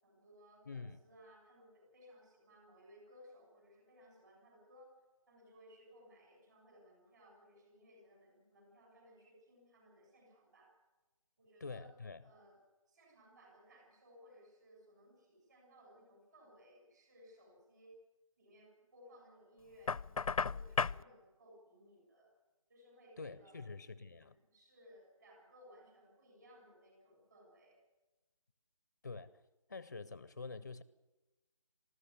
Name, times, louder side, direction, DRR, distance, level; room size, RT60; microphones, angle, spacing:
voice 1, 0.0-4.9 5.3-10.7 11.4-11.9 12.2-12.6 12.9-17.9 18.4-22.3 22.7-23.6 24.1-27.8, equal, 30° right, 1 dB, 6.8 m, -62 dB
voice 2, 0.7-1.0 11.6-12.2 23.2-24.3 29.0-29.3 29.7-30.8, left 4 dB, 30° left, 15 dB, 0.6 m, -46 dB
Knock, 19.9-21.0, left 5 dB, 90° left, 0.6 m, -34 dB
20.0 x 14.0 x 9.5 m, 1.1 s
hypercardioid pair, 175°, 17 cm